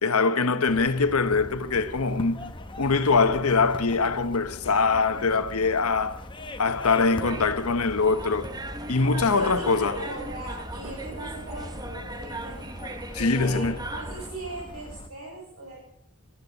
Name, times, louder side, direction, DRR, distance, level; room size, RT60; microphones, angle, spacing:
voice 1, 0.0-6.2 6.6-8.5 8.9-10.0 13.2-13.8, left 4 dB, 75° left, 1.0 m, -23 dB
sound 1, 0.7-15.1, left 1 dB, 20° left, 0.9 m, -42 dB
sound 2, 7.0-14.3, right 1 dB, 20° right, 0.9 m, -38 dB
voice 2, 9.0-15.8, right 1 dB, 80° right, 6.3 m, -40 dB
23.0 x 13.0 x 4.0 m
head